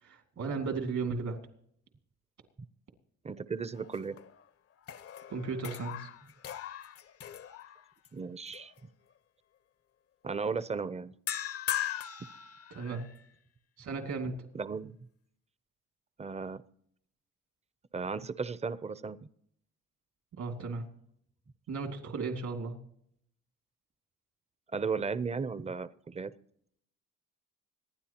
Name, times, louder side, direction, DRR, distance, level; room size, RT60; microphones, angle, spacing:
voice 1, 0.0-1.4 5.3-6.1 12.7-13.1 13.8-14.4 20.3-20.9 21.7-22.8, right 4 dB, 70° right, 5 dB, 2.6 m, -35 dB
voice 2, 3.2-4.2 8.1-8.9 10.2-11.1 14.5-15.0 16.2-16.6 17.9-19.3 24.7-26.3, right 5 dB, 20° right, 16 dB, 0.6 m, -35 dB
sound 1, 3.7-4.4 4.8-8.1 8.5-8.8 11.3-13.2, left 10 dB, 50° left, 0.7 m, -39 dB
25.5 x 10.0 x 2.9 m, 0.69 s
cardioid pair, 90°, 30 cm